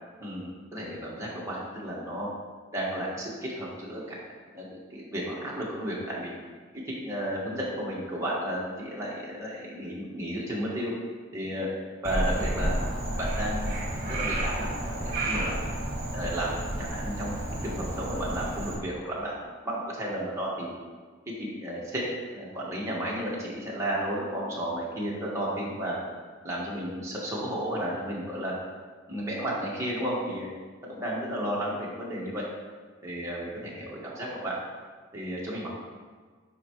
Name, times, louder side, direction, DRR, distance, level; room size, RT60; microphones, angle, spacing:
voice 1, 0.2-2.3 2.7-4.2 4.5-6.3 6.9-10.9 11.3-11.7 12.0-12.8 13.2-13.7 14.1-15.5 16.1-17.3 17.6-19.3 19.6-20.7 21.4-22.0 22.3-26.0 26.4-28.5 29.1-30.5 30.8-32.4 33.0-34.5 35.1-35.7, right 1 dB, 15° right, -6 dB, 1.5 m, -33 dB
Frog, 12.0-18.8, right 1 dB, 45° right, 1.4 m, -31 dB
10.5 x 4.6 x 3.1 m, 1.5 s
head